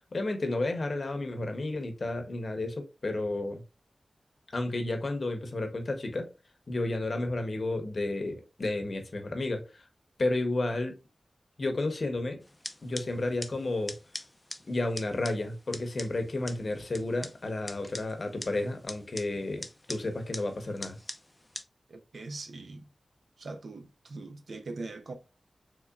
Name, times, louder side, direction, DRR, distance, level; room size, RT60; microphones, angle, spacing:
voice 1, 0.1-3.6 4.5-6.3 6.7-9.8 10.2-10.9 11.6-12.4 12.8-14.0 14.7-21.0, left 2 dB, 50° left, 0.7 m, -32 dB
sound 1, 12.4-21.6, left 1 dB, 15° left, 0.3 m, -44 dB
voice 2, 21.9-22.9 23.4-25.1, right 3 dB, 70° right, 0.5 m, -41 dB
3.8 x 3.1 x 2.2 m
wide cardioid pair, 115°, 0 cm